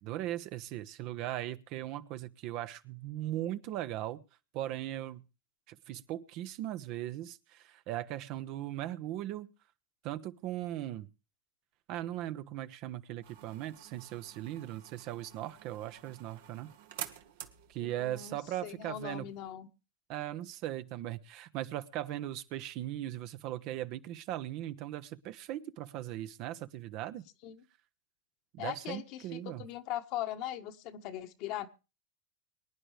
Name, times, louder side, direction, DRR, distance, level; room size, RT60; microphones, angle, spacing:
voice 1, 0.0-4.2 4.5-5.2 5.7-9.5 10.0-11.1 11.9-16.7 17.7-19.3 20.1-27.2 28.5-29.6, right 13 dB, 55° right, 12 dB, 0.9 m, -39 dB
sound 1, 13.2-19.5, right 10 dB, 70° right, 1.3 m, -50 dB
voice 2, 17.8-19.7 27.4-27.6 28.6-31.7, left 12 dB, 55° left, 7 dB, 1.4 m, -40 dB
24.0 x 10.0 x 3.3 m, 0.32 s
hypercardioid pair, 90°, 0 cm